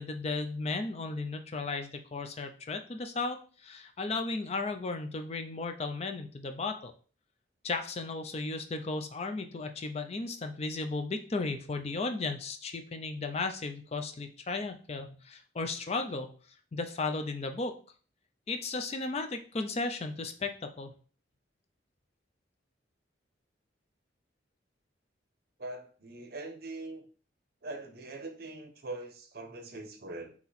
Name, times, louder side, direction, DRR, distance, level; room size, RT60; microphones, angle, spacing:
voice 1, 0.0-6.9 7.6-16.3 16.7-17.7 18.5-20.9, left 3 dB, 35° left, 7 dB, 0.4 m, -35 dB
voice 2, 25.6-27.1 27.6-30.3, right 2 dB, 55° right, 5 dB, 0.8 m, -42 dB
4.2 x 2.9 x 4.0 m, 0.40 s
head